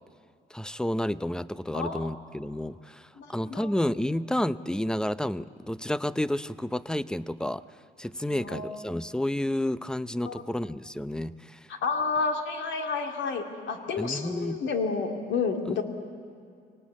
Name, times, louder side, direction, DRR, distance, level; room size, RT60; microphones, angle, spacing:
voice 1, 0.5-7.6 8.0-11.6 14.0-14.6, left 1 dB, 5° left, 16 dB, 0.6 m, -30 dB
voice 2, 1.7-2.1 3.2-3.7 8.3-8.8 10.2-10.4 11.7-15.8, left 4 dB, 70° left, 4 dB, 2.5 m, -30 dB
23.5 x 18.5 x 8.6 m, 2.4 s
cardioid pair, 90°, 20 cm